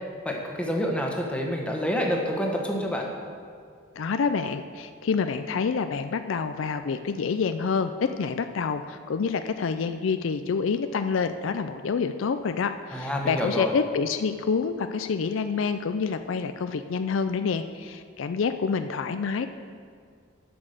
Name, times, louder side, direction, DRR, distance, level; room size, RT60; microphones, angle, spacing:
voice 1, 0.2-3.1 12.9-13.8, equal, 5° left, 0 dB, 1.3 m, -28 dB
voice 2, 4.0-19.5, left 5 dB, 70° left, 9 dB, 0.4 m, -27 dB
11.0 x 6.1 x 6.6 m, 2.2 s
head